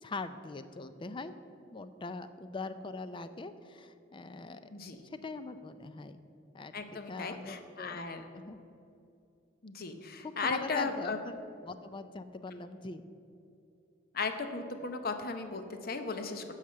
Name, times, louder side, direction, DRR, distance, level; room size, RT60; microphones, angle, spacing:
voice 1, 0.0-1.3 1.7-4.7 5.0-6.2 6.5-8.0 8.3-8.6 10.2-13.0, left 3 dB, 25° left, 11 dB, 0.4 m, -42 dB
voice 2, 4.7-5.1 6.7-8.2 9.6-11.2 14.1-16.4, left 4 dB, 50° left, 7 dB, 0.8 m, -36 dB
11.5 x 4.9 x 7.5 m, 2.7 s
head